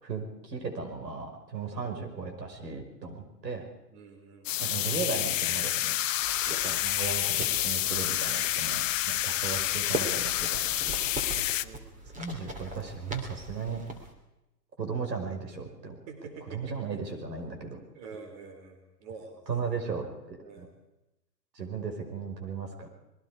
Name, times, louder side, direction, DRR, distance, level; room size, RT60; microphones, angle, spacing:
voice 1, 0.0-3.6 4.6-6.0 6.6-10.6 12.2-13.8 14.8-16.0 16.5-17.8 19.5-20.7 21.5-22.9, right 5 dB, 80° right, 4 dB, 5.4 m, -36 dB
voice 2, 3.9-4.5 11.6-11.9 16.1-16.8 17.9-19.8 20.4-20.7, right 4 dB, 40° right, 5 dB, 3.9 m, -46 dB
sound 1, 4.5-11.7, left 13 dB, 50° left, 1.0 m, -29 dB
sound 2, 6.1-14.1, right 2 dB, 15° right, 3.0 m, -41 dB
26.0 x 21.5 x 4.9 m, 0.94 s
hypercardioid pair, 125°, 50 cm